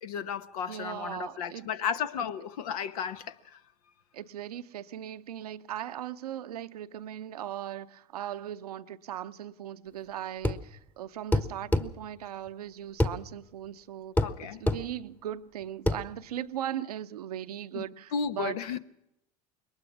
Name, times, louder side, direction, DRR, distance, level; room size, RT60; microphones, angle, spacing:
voice 1, 0.0-3.6 14.2-14.6 17.7-17.8 18.1-18.8, left 7 dB, 80° left, 1.1 m, -34 dB
voice 2, 0.7-1.7 4.1-14.3 14.6-18.6, right 11 dB, 90° right, 0.7 m, -38 dB
sound 1, 10.4-10.7 11.3-11.9 13.0-13.2 14.2-14.4 14.7-14.8 15.9-16.0, left 1 dB, 10° left, 1.1 m, -25 dB
22.0 x 19.5 x 6.0 m
hypercardioid pair, 90°, 19 cm